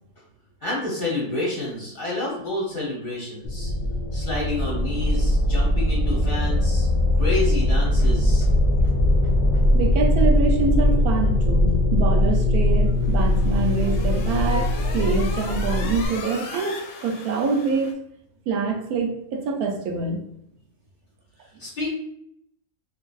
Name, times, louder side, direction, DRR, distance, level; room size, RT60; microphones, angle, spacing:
voice 1, 0.6-3.7 4.1-6.9 7.1-8.5 21.6-21.9, left 2 dB, 45° left, -6 dB, 0.8 m, -29 dB
sound 1, 3.4-16.1, left 1 dB, 90° left, 0.4 m, -20 dB
voice 2, 9.7-17.9 18.5-20.2, right 4 dB, 75° right, 2 dB, 1.0 m, -25 dB
sound 2, 12.9-17.9, left 4 dB, 70° left, 0.9 m, -37 dB
3.0 x 2.6 x 2.3 m, 0.74 s
omnidirectional pair, 1.6 m